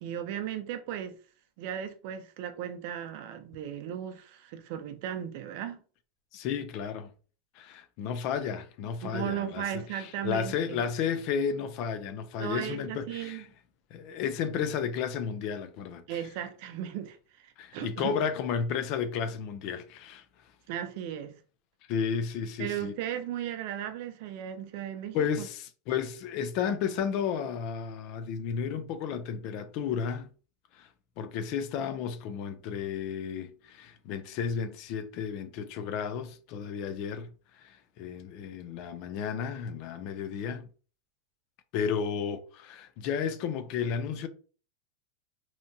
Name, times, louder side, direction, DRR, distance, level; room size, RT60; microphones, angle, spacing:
voice 1, 0.0-1.2 1.6-5.8 9.0-10.8 12.4-13.4 16.1-18.2 20.7-21.4 22.6-25.5, right 10 dB, 55° right, 0.4 m, -36 dB
voice 2, 6.3-7.1 7.6-13.4 13.9-16.2 17.6-20.2 21.9-22.9 25.1-30.3 30.7-30.9 31.2-40.7 41.7-44.3, left 7 dB, 45° left, 0.4 m, -33 dB
2.7 x 2.2 x 2.6 m
supercardioid pair, 155°, 0 cm